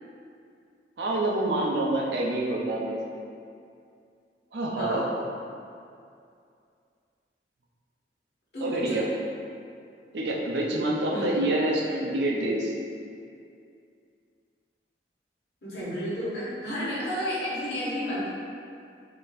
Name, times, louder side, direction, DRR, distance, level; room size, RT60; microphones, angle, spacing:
voice 1, 1.0-3.0 4.5-5.1 8.6-9.1 10.1-12.7, right 1 dB, 75° right, -3 dB, 0.6 m, -27 dB
voice 2, 8.5-9.0 11.1-11.4 15.6-18.3, equal, 60° left, -10 dB, 1.5 m, -31 dB
5.3 x 3.0 x 2.5 m, 2.4 s
head